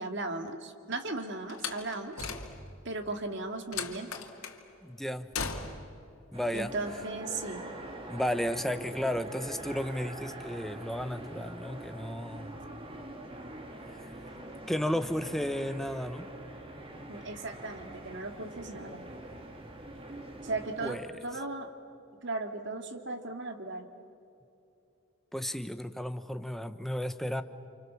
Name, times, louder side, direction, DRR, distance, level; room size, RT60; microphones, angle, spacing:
voice 1, 0.0-2.3 2.8-4.1 6.5-7.7 17.1-19.0 20.4-21.7 22.2-23.9, right 2 dB, 55° right, 5 dB, 2.2 m, -37 dB
Slam, 1.5-2.9 3.7-4.6 5.3-6.0, left 5 dB, 80° left, 2.4 m, -37 dB
voice 2, 4.8-5.3 6.3-6.7 8.1-12.6 14.0-14.1 14.7-16.3 20.8-21.1 25.3-27.4, equal, ahead, 9 dB, 0.9 m, -33 dB
sound 1, 6.3-20.9, right 1 dB, 25° right, 2.2 m, -44 dB
30.0 x 27.5 x 7.2 m, 2.7 s
head